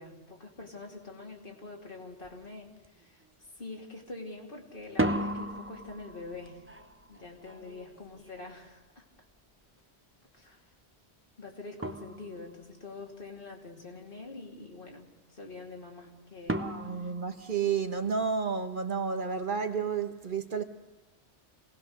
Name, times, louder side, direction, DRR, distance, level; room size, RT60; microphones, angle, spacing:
voice 1, 0.0-3.2 3.6-6.6 7.1-9.0 10.3-10.6 11.4-16.7 17.0-17.1, left 3 dB, 55° left, 3.0 m, -45 dB
sound 1, 2.2-2.4 2.8-3.3 4.8-9.6 11.3-11.4 11.8-12.7 16.5-18.2, right 1 dB, 15° right, 0.9 m, -36 dB
voice 2, 16.6-20.6, right 6 dB, 50° right, 1.2 m, -31 dB
27.5 x 18.5 x 6.5 m
omnidirectional pair, 1.1 m